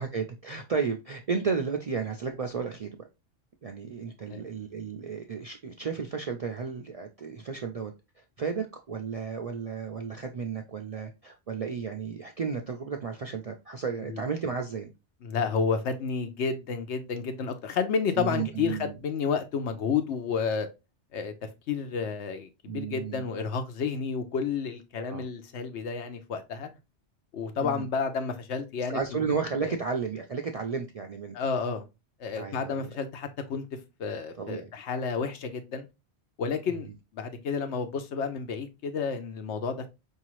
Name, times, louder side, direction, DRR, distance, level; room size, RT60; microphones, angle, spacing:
voice 1, 0.0-3.1 3.6-7.9 8.4-14.9 18.2-19.0 22.7-23.3 25.0-25.3 27.6-27.9 28.9-31.4 32.4-32.9 34.4-34.7, right 5 dB, 55° right, 0.4 m, -33 dB
voice 2, 15.2-20.7 21.1-21.3 21.7-26.7 27.3-29.2 29.6-29.7 31.3-31.8 32.2-33.7 34.0-35.9 36.4-39.9, left 5 dB, 80° left, 1.0 m, -31 dB
4.8 x 2.8 x 3.0 m
omnidirectional pair, 1.2 m